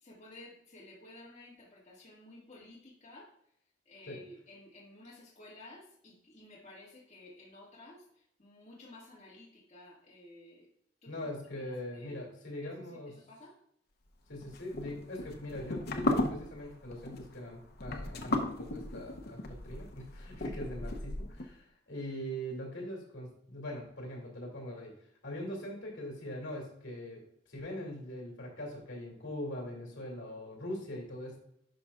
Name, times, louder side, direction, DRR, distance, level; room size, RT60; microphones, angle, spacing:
voice 1, 0.0-3.3 3.9-8.0 8.4-10.6 11.0-11.1 11.5-12.3 13.3-13.5, left 2 dB, 35° left, -6 dB, 1.9 m, -53 dB
voice 2, 11.0-13.2 14.3-24.9 25.2-27.2 27.5-31.4, left 1 dB, 70° left, -1 dB, 2.6 m, -42 dB
sound 1, 14.4-21.4, left 1 dB, 55° left, 0.8 m, -35 dB
11.0 x 5.4 x 2.4 m, 0.72 s
head